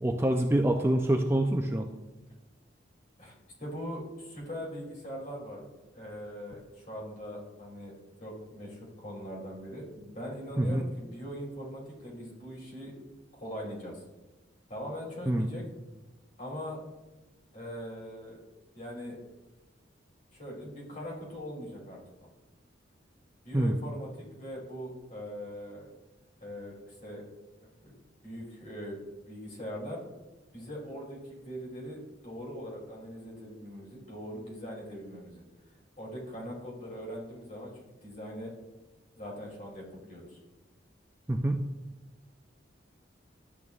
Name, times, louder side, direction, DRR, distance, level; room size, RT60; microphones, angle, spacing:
voice 1, 0.0-1.9 10.6-10.8 15.3-15.5 23.5-23.8 41.3-41.6, right 1 dB, 10° right, 2 dB, 0.4 m, -26 dB
voice 2, 3.6-5.6 5.9-7.9 8.2-12.9 13.3-14.0 14.7-15.6 16.4-16.8 17.5-18.4 18.7-19.2 20.3-22.3 23.4-25.9 26.4-27.2 27.6-28.0 28.2-29.0 29.2-30.0 30.5-35.4 36.0-38.5 39.2-40.4, equal, 40° left, -3 dB, 2.7 m, -41 dB
12.0 x 8.4 x 2.4 m, 1.1 s
head